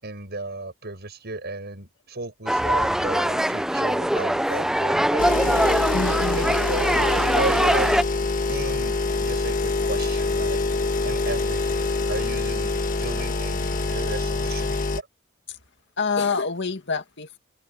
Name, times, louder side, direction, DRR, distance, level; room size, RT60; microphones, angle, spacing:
voice 1, 0.0-5.9 6.4-10.6 11.0-15.1, right 3 dB, 55° right, 7.0 m, -34 dB
sound 1, 2.5-8.0, right 1 dB, ahead, 0.3 m, -22 dB
sound 2, 5.2-15.0, left 3 dB, 40° left, 1.4 m, -25 dB
voice 2, 5.9-6.6 15.5-15.6 16.0-17.4, left 4 dB, 60° left, 2.2 m, -27 dB
head